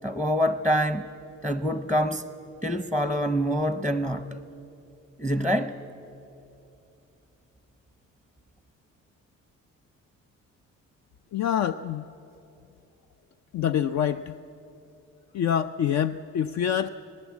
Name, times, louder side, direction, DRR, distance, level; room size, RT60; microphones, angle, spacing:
voice 1, 0.0-1.1 1.4-2.3 2.6-4.4 5.2-5.8, equal, 5° left, 11 dB, 0.7 m, -26 dB
voice 2, 11.3-12.0 13.5-14.3 15.3-16.9, left 9 dB, 65° left, 11 dB, 0.5 m, -26 dB
19.0 x 19.0 x 8.4 m, 2.8 s
cardioid pair, 90°, 30 cm